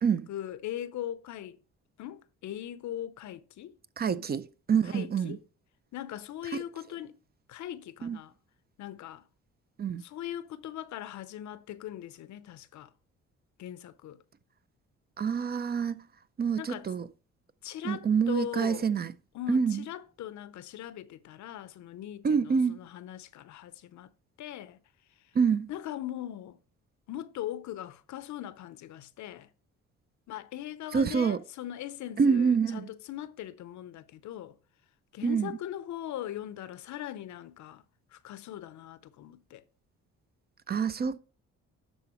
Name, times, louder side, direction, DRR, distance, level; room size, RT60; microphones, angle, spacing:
voice 1, 0.3-1.6 2.0-3.8 4.1-4.3 4.8-5.4 5.9-7.2 7.5-8.3 8.8-9.2 10.0-12.9 13.6-14.2 16.6-16.9 17.6-18.9 19.3-24.1 24.4-24.8 25.7-26.6 27.1-29.5 30.3-34.6 35.1-37.8 38.1-39.6, left 12 dB, 70° left, 0.6 m, -40 dB
voice 2, 4.0-5.4 8.0-8.2 9.8-10.0 15.2-16.0 16.4-17.1 17.8-19.1 19.5-19.8 22.2-22.8 25.4-25.7 30.9-31.4 32.2-32.9 35.2-35.5 40.7-41.2, right 6 dB, 35° right, 0.4 m, -26 dB
12.0 x 4.0 x 2.9 m
cardioid pair, 90°, 30 cm